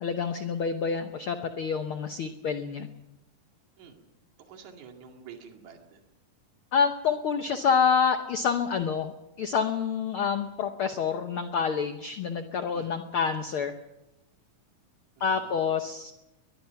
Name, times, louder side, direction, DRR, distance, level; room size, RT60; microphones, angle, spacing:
voice 1, 0.0-2.9 6.7-9.1 9.4-13.7 15.2-16.1, left 6 dB, 80° left, 7 dB, 1.1 m, -27 dB
voice 2, 4.5-6.0 12.7-12.9 15.2-15.5, right 7 dB, 60° right, 3 dB, 3.5 m, -48 dB
22.0 x 21.5 x 5.8 m, 0.93 s
omnidirectional pair, 3.8 m